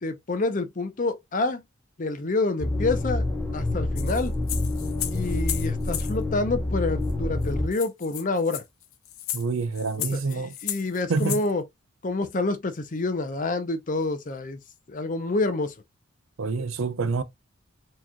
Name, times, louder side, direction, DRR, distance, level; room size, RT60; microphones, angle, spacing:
voice 1, 0.0-1.6 2.0-3.3 3.5-4.3 5.1-8.6 10.0-11.6 12.0-14.6 14.9-15.7, left 3 dB, 35° left, 0.6 m, -28 dB
sound 1, 2.6-7.7, left 2 dB, 10° left, 0.8 m, -27 dB
sound 2, 4.0-6.1 7.1-7.2 7.4-7.5 7.7-11.5, left 12 dB, 80° left, 0.6 m, -34 dB
voice 2, 9.3-10.5 11.1-11.4 16.4-17.2, right 4 dB, 75° right, 0.5 m, -27 dB
4.6 x 3.0 x 2.2 m
head